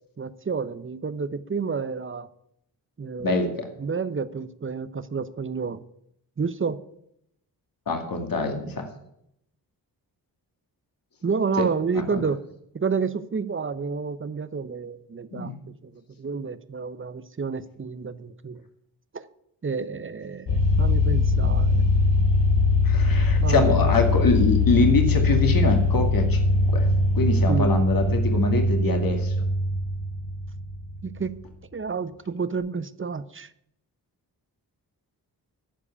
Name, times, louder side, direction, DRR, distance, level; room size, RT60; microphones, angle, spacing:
voice 1, 0.2-2.3 3.0-3.5 3.8-5.8 6.4-6.8 11.2-12.4 12.7-15.5 15.8-15.9 16.2-18.6 19.1-19.2 19.6-21.8 23.4-23.9 27.5-27.7 31.0-31.3 31.7-33.5, right 5 dB, 30° right, 14 dB, 0.8 m, -29 dB
voice 2, 3.2-3.7 7.9-8.9 11.6-11.7 12.1-12.2 15.3-15.6 22.8-26.4 26.7-26.9 27.2-29.3, left 3 dB, 55° left, 4 dB, 2.3 m, -24 dB
sound 1, 20.5-31.1, left 2 dB, 85° left, 1.4 m, -21 dB
13.0 x 4.8 x 8.5 m, 0.76 s
cardioid pair, 50°, 42 cm